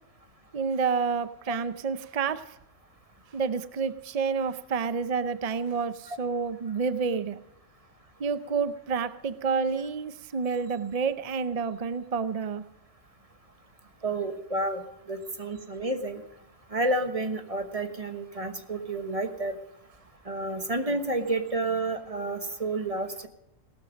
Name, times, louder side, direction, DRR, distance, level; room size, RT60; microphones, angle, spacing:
voice 1, 0.5-2.6 3.3-7.4 8.2-12.6, right 5 dB, 55° right, 13 dB, 0.4 m, -29 dB
voice 2, 14.0-14.8 15.1-16.2 16.7-19.6 20.3-23.3, right 2 dB, 25° right, 8 dB, 1.2 m, -30 dB
17.5 x 13.0 x 5.1 m, 0.86 s
omnidirectional pair, 1.4 m